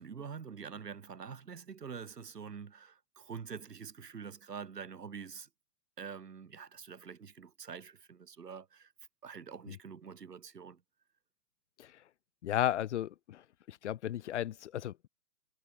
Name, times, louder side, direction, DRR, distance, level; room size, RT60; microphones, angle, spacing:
voice 1, 0.0-5.5 6.0-8.9 9.2-10.8, right 6 dB, 75° right, 7.2 m, -46 dB
voice 2, 12.4-13.4 13.7-15.1, left 11 dB, 45° left, 2.3 m, -34 dB
hypercardioid pair, 145°, 49 cm